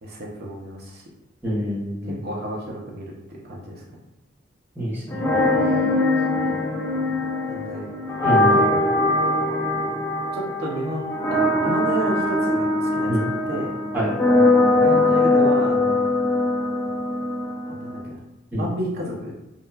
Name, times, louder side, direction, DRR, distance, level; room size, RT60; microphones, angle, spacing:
voice 1, 0.0-1.0 2.1-3.8 7.5-7.9 8.5-8.8 10.3-13.7 14.8-16.1 17.7-18.2 18.5-19.4, right 1 dB, 55° right, -3 dB, 0.5 m, -31 dB
voice 2, 1.4-2.2 4.7-5.2 8.2-8.6 13.1-13.2 13.9-14.1 18.5-18.7, equal, 10° right, -8 dB, 0.9 m, -25 dB
sound 1, 5.1-18.0, left 2 dB, 15° left, 0.3 m, -21 dB
2.8 x 2.2 x 2.2 m, 0.90 s
head